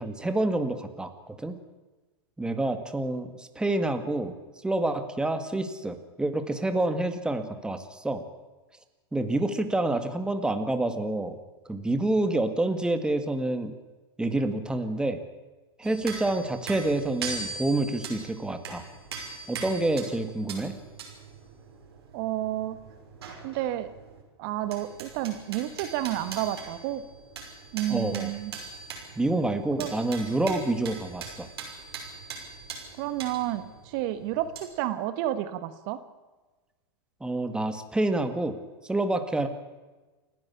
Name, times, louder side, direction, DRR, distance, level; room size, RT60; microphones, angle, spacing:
voice 1, 0.0-1.6 2.4-4.3 4.6-8.3 9.1-11.4 11.7-13.7 14.2-15.2 15.8-18.9 19.5-20.7 27.9-28.3 29.2-31.5 37.2-38.6 38.9-39.5, right 2 dB, 5° right, 8 dB, 2.0 m, -28 dB
sound 1, 15.8-24.2 24.5-34.6, right 5 dB, 80° right, 6.0 m, -41 dB
voice 2, 22.1-22.8 23.4-23.9 24.4-27.0 27.7-28.5 29.8-29.9 33.0-36.0, right 13 dB, 55° right, 11 dB, 1.5 m, -30 dB
29.0 x 11.0 x 8.6 m, 1.2 s
hypercardioid pair, 115°, 13 cm